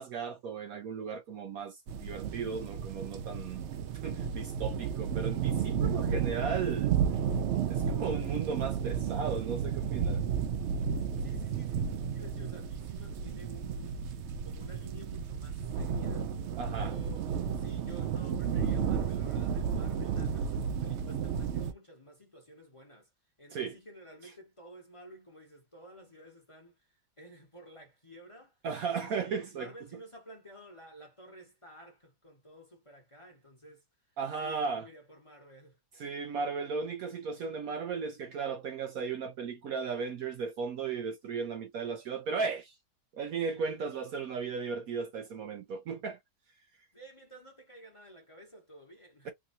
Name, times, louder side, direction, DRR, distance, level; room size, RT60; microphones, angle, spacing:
voice 1, 0.0-3.6 4.0-7.0 7.7-10.2 16.6-16.9 23.5-23.8 28.6-29.7 34.2-34.9 36.0-42.7 43.1-46.2 49.2-49.3, right 5 dB, 65° right, 1.0 m, -36 dB
sound 1, 1.9-21.7, right 7 dB, 85° right, 0.6 m, -32 dB
voice 2, 11.2-14.1 14.4-16.3 16.7-17.3 17.6-23.1 23.4-26.9 27.2-28.6 28.9-33.8 34.4-35.8 46.9-49.3, equal, 20° left, 1.3 m, -52 dB
3.6 x 2.6 x 2.6 m
omnidirectional pair, 1.8 m